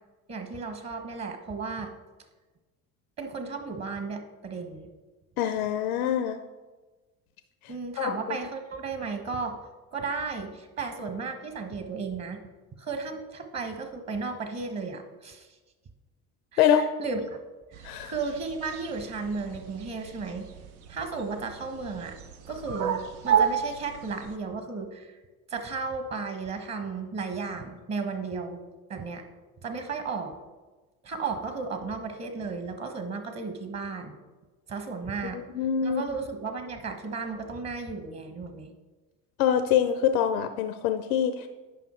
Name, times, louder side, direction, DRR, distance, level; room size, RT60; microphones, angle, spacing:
voice 1, 0.3-1.9 3.2-4.9 7.7-9.6 9.9-12.4 12.8-15.5 16.5-17.4 17.7-20.5 20.9-22.2 22.5-25.1 25.5-28.6 28.9-29.2 29.6-30.3 31.0-34.2 34.7-35.4 35.8-38.7, right 4 dB, 35° right, 6 dB, 1.3 m, -34 dB
voice 2, 5.4-6.4 8.0-8.4 16.6-16.9 17.8-18.1 35.3-36.0 39.4-41.5, left 9 dB, 80° left, 9 dB, 0.6 m, -25 dB
sound 1, 17.7-24.4, right 8 dB, 80° right, 0.7 m, -32 dB
9.2 x 5.6 x 4.4 m, 1.2 s
hypercardioid pair, 65°, 42 cm